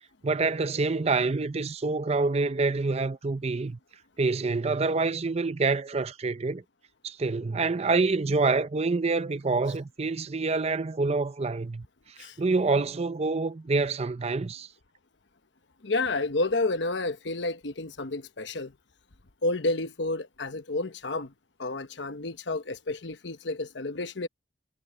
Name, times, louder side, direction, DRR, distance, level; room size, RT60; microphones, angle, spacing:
voice 1, 0.2-3.8 4.2-6.6 7.0-11.8 12.4-14.7, right 3 dB, 35° right, 0.5 m, -26 dB
voice 2, 15.8-18.7 19.4-21.3 21.6-24.3, left 2 dB, 75° left, 1.1 m, -30 dB
head